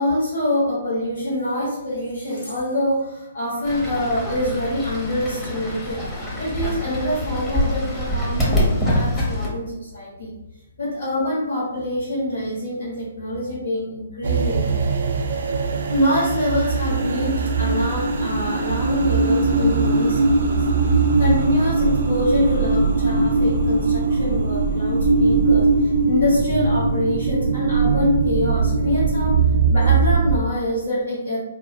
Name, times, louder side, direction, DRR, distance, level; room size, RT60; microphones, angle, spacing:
voice 1, 0.0-6.1 6.4-10.3 10.8-14.7 15.9-20.6 21.2-29.4 29.7-31.4, left 1 dB, 75° left, -8 dB, 1.2 m, -25 dB
Fowl / Bird, 3.6-9.5, equal, 10° left, 0.8 m, -25 dB
sound 1, 14.2-30.4, right 3 dB, 65° right, 0.3 m, -20 dB
2.6 x 2.1 x 2.6 m, 0.96 s
figure-of-eight pair, 130°, 0 cm